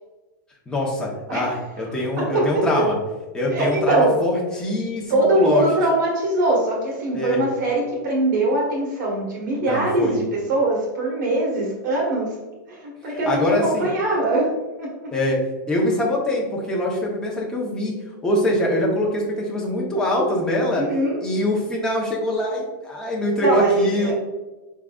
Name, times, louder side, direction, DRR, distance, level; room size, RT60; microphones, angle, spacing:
voice 1, 0.7-2.9 3.3-5.7 7.1-7.4 9.6-10.2 13.1-13.9 15.1-15.4 15.7-18.0 18.2-20.9 21.2-24.1, left 1 dB, 5° left, -3 dB, 0.8 m, -23 dB
voice 2, 2.2-2.6 3.5-4.1 5.1-12.3 12.7-14.5 14.8-15.1 20.7-21.2 23.4-24.1, right 1 dB, 65° right, -2 dB, 1.4 m, -22 dB
4.7 x 3.7 x 2.3 m, 1.1 s
supercardioid pair, 165°, 11 cm